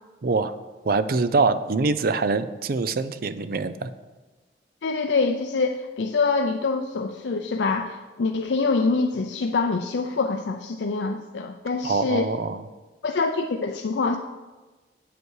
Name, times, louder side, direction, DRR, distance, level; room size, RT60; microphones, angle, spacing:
voice 1, 0.2-0.5 0.8-3.9 11.8-12.6, right 4 dB, 55° right, 12 dB, 0.5 m, -24 dB
voice 2, 4.8-12.3 13.0-14.2, left 4 dB, 85° left, 4 dB, 0.5 m, -25 dB
8.1 x 8.1 x 4.7 m, 1.2 s
head